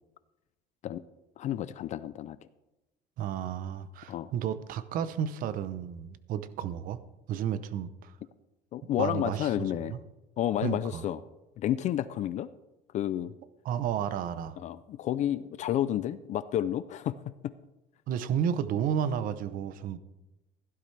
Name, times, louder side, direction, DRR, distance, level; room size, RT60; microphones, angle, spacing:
voice 1, 1.4-2.4 4.1-4.3 8.7-9.9 10.4-11.2 11.6-12.5 12.9-13.3 14.6-17.5, left 11 dB, 45° left, 15 dB, 0.4 m, -30 dB
voice 2, 3.2-7.0 7.3-8.2 9.0-10.0 10.6-11.0 13.6-14.6 18.1-20.0, right 9 dB, 55° right, 13 dB, 0.8 m, -32 dB
16.0 x 12.5 x 3.3 m, 0.98 s
cardioid pair, 160°, 17 cm